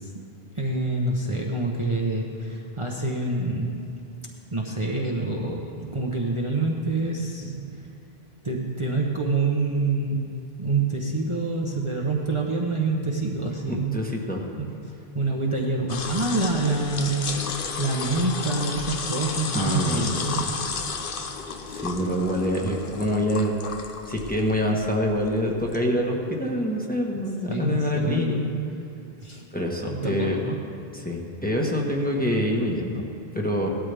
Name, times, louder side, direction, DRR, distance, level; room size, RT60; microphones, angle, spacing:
voice 1, 0.5-3.9 4.5-7.9 8.4-10.3 10.6-14.0 14.6-14.7 15.1-20.5 27.5-28.7 29.2-29.4 29.9-30.6, right 3 dB, 30° right, -2 dB, 1.0 m, -27 dB
voice 2, 13.7-14.4 19.5-20.2 21.7-23.5 24.1-28.5 29.5-30.4 31.0-33.1 33.3-33.7, left 1 dB, 10° left, -2 dB, 1.3 m, -26 dB
sound 1, 15.9-25.8, left 5 dB, 60° left, 1.0 m, -33 dB
17.5 x 12.5 x 3.5 m, 2.6 s
omnidirectional pair, 1.1 m